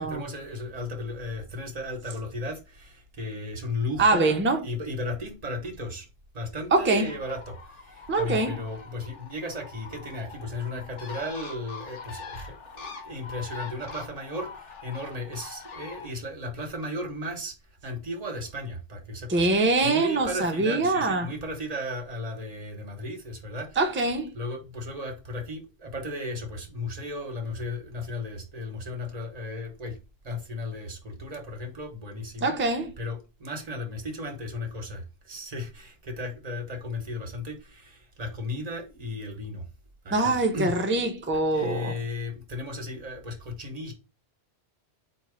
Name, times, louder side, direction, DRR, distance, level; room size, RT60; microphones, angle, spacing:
voice 1, 0.0-6.1 6.3-17.5 17.8-23.8 24.3-30.0 30.2-32.5 33.0-39.6 40.0-40.7 41.5-43.9, left 1 dB, 35° right, 1.0 m, -35 dB
voice 2, 4.0-4.6 6.7-7.1 8.1-8.6 19.3-21.3 23.8-24.3 32.4-32.9 40.1-41.9, right 2 dB, 20° right, 0.3 m, -24 dB
Bird, 6.9-16.1, left 5 dB, 90° left, 1.2 m, -43 dB
4.1 x 2.7 x 4.8 m
omnidirectional pair, 1.2 m